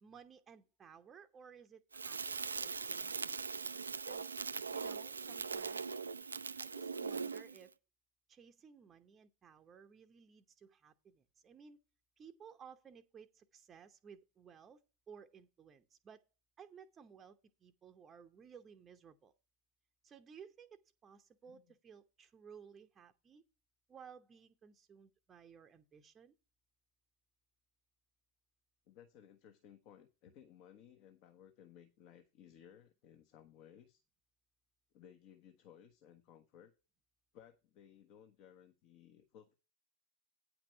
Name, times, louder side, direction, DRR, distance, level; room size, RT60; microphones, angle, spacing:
voice 1, 0.0-3.5 3.9-4.3 4.7-5.9 6.6-7.7 8.3-11.8 12.2-14.8 15.1-16.2 16.6-19.3 20.0-23.4 23.9-26.3, right 6 dB, 20° right, 0.8 m, -58 dB
Crackle, 1.9-7.6, right 5 dB, 75° right, 0.4 m, -41 dB
voice 2, 28.9-34.0 34.9-36.7 37.3-39.5, left 9 dB, 45° left, 1.1 m, -60 dB
9.5 x 5.9 x 5.5 m
figure-of-eight pair, 90°, 0 cm